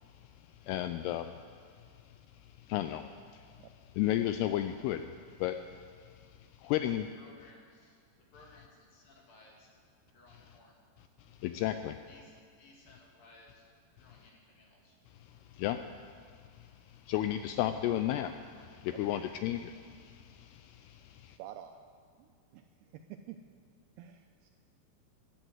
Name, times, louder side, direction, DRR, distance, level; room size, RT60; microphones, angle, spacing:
voice 1, 0.6-1.4 2.6-3.5 4.0-5.1 5.4-5.8 6.6-7.1 11.4-12.0 15.2-15.8 16.6-21.4, left 12 dB, 85° left, 9 dB, 2.3 m, -34 dB
voice 2, 7.2-8.0 8.3-9.7 10.1-10.8 12.1-13.6 14.0-15.0, left 2 dB, 60° left, -1 dB, 3.5 m, -59 dB
voice 3, 21.4-21.8 22.2-22.6 22.9-23.4 24.0-24.5, right 11 dB, 85° right, 6 dB, 2.3 m, -48 dB
15.5 x 11.0 x 7.9 m, 2.2 s
omnidirectional pair, 5.1 m